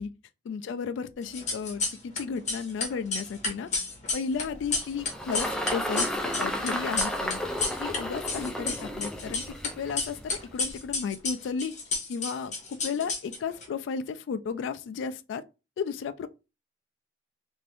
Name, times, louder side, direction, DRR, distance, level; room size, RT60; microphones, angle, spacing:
voice 1, 0.4-3.7 4.1-7.4 7.8-11.7 12.1-15.4 15.8-16.3, left 6 dB, 90° left, 0.3 m, -34 dB
sound 1, 1.3-2.2 2.5-8.0 8.3-9.7 10.0-13.7, left 3 dB, 40° left, 0.9 m, -31 dB
Engine, 4.4-11.0, equal, 5° left, 0.4 m, -33 dB
2.6 x 2.5 x 3.3 m
head